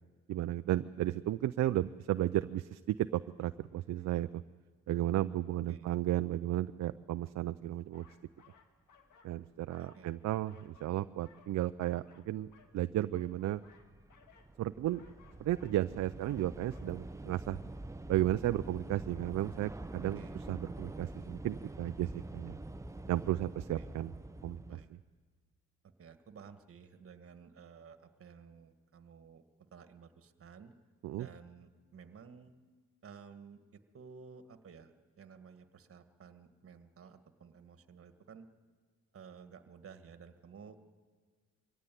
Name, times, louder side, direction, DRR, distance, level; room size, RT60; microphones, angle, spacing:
voice 1, 0.3-4.4 4.9-8.1 9.2-12.5 12.7-13.6 14.6-15.0 15.4-17.6 18.1-20.2 20.5-22.6 23.1-24.1 24.4-24.6 31.0-31.3, right 14 dB, 65° right, 11 dB, 0.5 m, -34 dB
voice 2, 5.5-5.9 9.8-10.1 20.0-20.4 23.8-23.9 24.6-24.9 25.8-29.4 29.7-30.7 31.1-32.5 33.0-38.5 39.1-40.8, right 6 dB, 45° right, 8 dB, 1.8 m, -54 dB
sound 1, 7.9-9.4 9.6-11.0 11.2-12.8 13.0-14.5 14.8-15.8 16.1-16.4 16.7-16.9, left 6 dB, 75° left, 2.1 m, -63 dB
Train / Subway metro underground, 11.8-12.0 12.3-24.8, right 2 dB, 10° right, 0.8 m, -46 dB
22.5 x 16.5 x 9.2 m, 1.5 s
cardioid pair, 90°, 30 cm